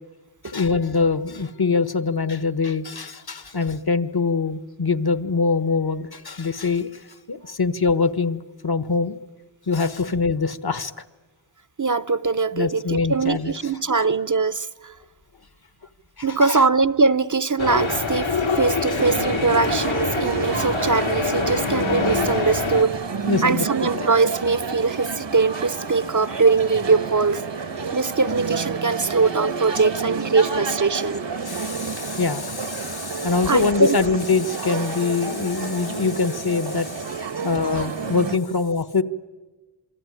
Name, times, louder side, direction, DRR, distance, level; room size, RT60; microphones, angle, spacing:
voice 1, 0.4-7.0 7.3-9.2 9.7-10.9 12.5-13.5 16.2-16.6 23.3-24.1 31.5-37.0 37.4-39.0, left 4 dB, 55° left, 1.4 m, -23 dB
voice 2, 11.8-15.0 16.2-23.2 23.4-31.2 33.5-34.0, right 4 dB, 40° right, 0.9 m, -22 dB
sound 1, 17.6-22.8, left 4 dB, 85° left, 3.2 m, -25 dB
sound 2, 19.0-38.4, right 5 dB, 70° right, 1.6 m, -30 dB
27.0 x 22.0 x 9.8 m
wide cardioid pair, 45°, 45 cm